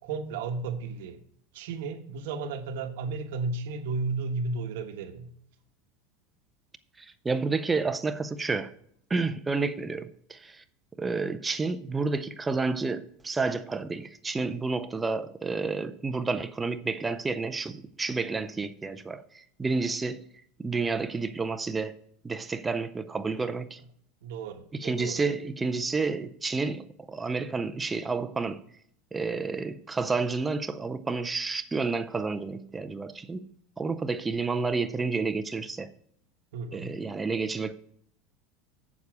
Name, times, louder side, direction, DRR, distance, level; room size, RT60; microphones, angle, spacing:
voice 1, 0.0-1.2 1.5-5.3 24.2-25.2 36.5-36.9, right 4 dB, 75° right, 1.2 m, -33 dB
voice 2, 7.0-8.7 9.1-10.6 11.0-20.2 20.6-22.0 22.2-23.8 24.7-28.6 29.1-33.5 33.8-35.9 36.7-37.7, right 4 dB, 10° right, 0.5 m, -30 dB
8.1 x 7.2 x 4.7 m
supercardioid pair, 165°, 0 cm